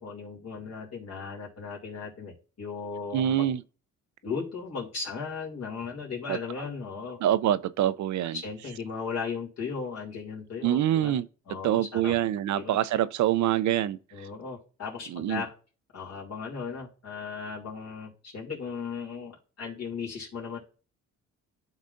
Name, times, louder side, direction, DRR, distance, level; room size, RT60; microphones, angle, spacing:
voice 1, 0.0-3.5 4.2-7.2 8.2-11.2 11.5-12.2 12.5-12.8 14.1-15.5 15.9-20.6, left 5 dB, 55° left, 2.6 m, -37 dB
voice 2, 3.1-3.6 6.3-6.4 7.2-8.4 10.6-11.3 11.6-14.0 15.1-15.4, right 12 dB, 70° right, 0.6 m, -25 dB
12.0 x 4.1 x 2.5 m
cardioid pair, 90°, 30 cm